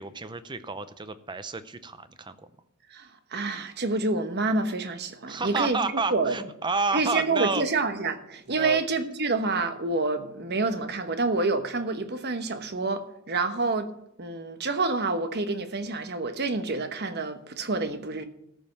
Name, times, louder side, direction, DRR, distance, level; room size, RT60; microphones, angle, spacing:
voice 1, 0.0-2.4 5.3-7.6 8.6-8.8, right 3 dB, 20° right, 0.6 m, -30 dB
voice 2, 2.9-5.8 6.1-6.4 6.9-13.9 14.2-18.2, right 3 dB, 50° right, 1.1 m, -28 dB
14.0 x 5.4 x 7.3 m
head